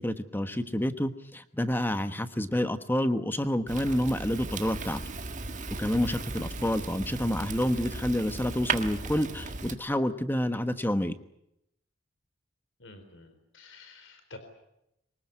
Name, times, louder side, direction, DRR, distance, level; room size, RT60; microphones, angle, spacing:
voice 1, 0.0-5.0 5.8-11.2, equal, 10° left, 10 dB, 1.1 m, -28 dB
Fire, 3.7-9.8, right 4 dB, 40° right, 1.6 m, -36 dB
voice 2, 12.8-14.4, left 2 dB, 60° left, 8 dB, 4.1 m, -50 dB
24.0 x 20.0 x 9.6 m, 0.83 s
head